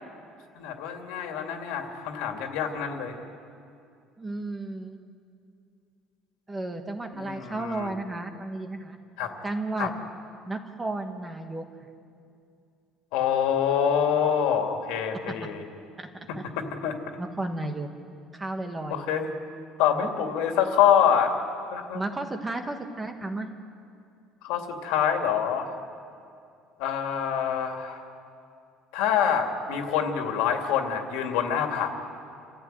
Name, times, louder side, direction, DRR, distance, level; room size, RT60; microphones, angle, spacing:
voice 1, 0.5-3.1 7.1-7.9 9.2-9.3 9.8-9.9 13.1-15.6 16.8-16.9 18.9-19.3 19.8-21.3 21.7-22.0 24.4-25.7 26.8-28.0 28.9-31.9, left 8 dB, 90° left, 4 dB, 2.7 m, -26 dB
voice 2, 4.2-5.0 6.5-9.0 9.4-9.9 10.5-11.7 15.3-15.4 16.0-16.4 17.2-17.9 18.3-19.1 19.9-20.1 21.9-23.5, right 2 dB, 10° right, 5 dB, 1.3 m, -33 dB
28.5 x 14.5 x 9.2 m, 2.5 s
cardioid pair, 175°, 0 cm